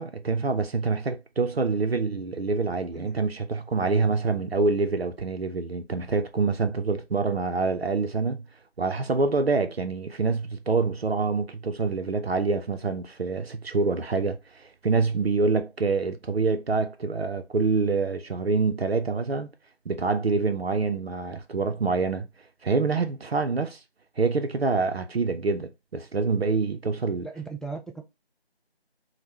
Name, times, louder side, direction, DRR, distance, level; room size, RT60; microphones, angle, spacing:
voice 1, 0.0-8.4 8.8-19.5 19.9-22.3 22.6-23.8 24.2-27.3, right 4 dB, 70° right, 0.5 m, -26 dB
voice 2, 27.2-28.0, right 4 dB, ahead, 0.3 m, -37 dB
3.4 x 2.1 x 2.8 m
figure-of-eight pair, 175°, 32 cm